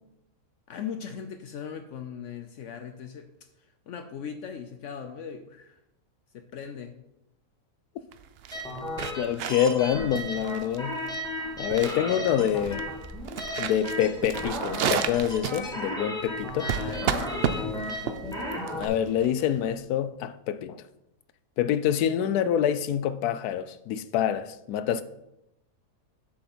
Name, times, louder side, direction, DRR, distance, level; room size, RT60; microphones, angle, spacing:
voice 1, 0.7-3.3 3.9-5.8 6.3-7.0 11.9-12.4 12.6-12.8 16.6-19.0, left 7 dB, 65° left, 0.8 m, -39 dB
sound 1, 8.1-19.8, right 8 dB, 75° right, 0.5 m, -33 dB
sound 2, 8.5-18.9, equal, 5° left, 1.5 m, -35 dB
voice 2, 9.2-11.0 11.6-12.9 13.6-16.7 18.8-20.9 21.6-25.0, left 9 dB, 85° left, 1.1 m, -26 dB
7.7 x 6.5 x 4.3 m
omnidirectional pair, 1.6 m